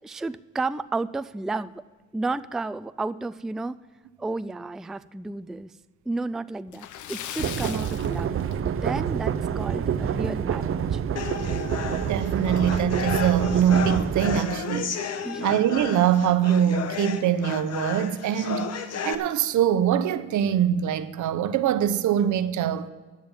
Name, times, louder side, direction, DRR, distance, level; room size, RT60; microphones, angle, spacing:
voice 1, 0.0-1.8 2.1-3.8 4.2-5.7 6.1-11.0 15.2-15.5, right 3 dB, ahead, 0.3 m, -32 dB
Splash splatter, 6.7-9.0 9.4-9.5 10.0-10.1 11.5-11.6 11.9-12.0 12.7-12.9, left 11 dB, 80° left, 0.8 m, -39 dB
sound 1, 7.4-14.4, right 8 dB, 45° right, 0.6 m, -27 dB
sound 2, 11.2-19.1, left 6 dB, 55° left, 1.1 m, -33 dB
voice 2, 11.9-14.9 15.4-18.8 19.0-22.9, right 9 dB, 75° right, 0.9 m, -23 dB
10.5 x 8.6 x 7.3 m
cardioid pair, 90°, 30 cm